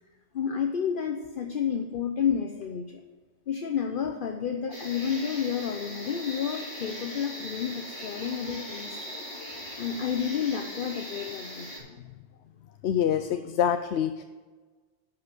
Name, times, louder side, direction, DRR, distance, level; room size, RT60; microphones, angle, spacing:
voice 1, 0.3-3.0 3.5-9.2 9.8-11.7, left 7 dB, 55° left, 4 dB, 0.9 m, -30 dB
sound 1, 4.7-11.8, equal, 30° left, 4.1 m, -40 dB
voice 2, 9.1-9.6 12.8-14.2, left 9 dB, 90° left, 9 dB, 0.9 m, -27 dB
11.5 x 5.8 x 7.6 m, 1.4 s
omnidirectional pair, 1.1 m